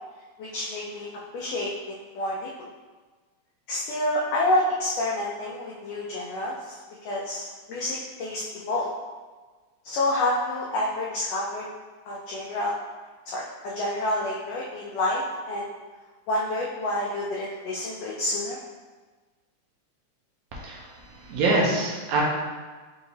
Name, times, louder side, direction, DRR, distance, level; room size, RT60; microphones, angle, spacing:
voice 1, 0.4-1.1 1.3-2.5 3.7-8.9 9.8-11.7 12.1-12.7 13.3-15.7 16.3-18.6, left 1 dB, 85° left, -4 dB, 1.4 m, -28 dB
voice 2, 20.5-22.2, right 2 dB, 75° right, -3 dB, 2.0 m, -25 dB
5.6 x 2.8 x 2.7 m, 1.3 s
omnidirectional pair, 3.5 m